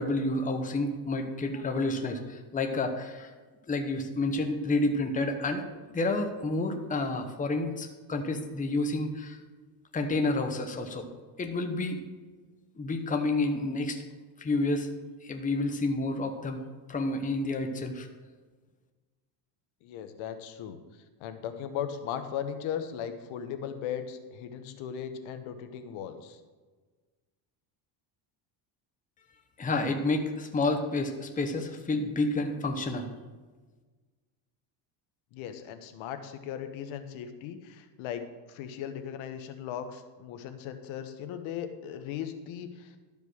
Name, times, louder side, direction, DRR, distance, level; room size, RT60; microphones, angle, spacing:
voice 1, 0.0-3.3 3.7-9.4 9.9-11.1 11.4-12.0 12.8-14.0 14.4-14.9 15.2-16.6 16.9-18.1 29.6-33.1, left 2 dB, 15° left, 4 dB, 0.9 m, -29 dB
voice 2, 19.8-20.8 21.2-26.4 35.3-42.9, left 9 dB, 75° left, 8 dB, 1.1 m, -37 dB
12.0 x 5.3 x 6.3 m, 1.3 s
cardioid pair, 125°, 49 cm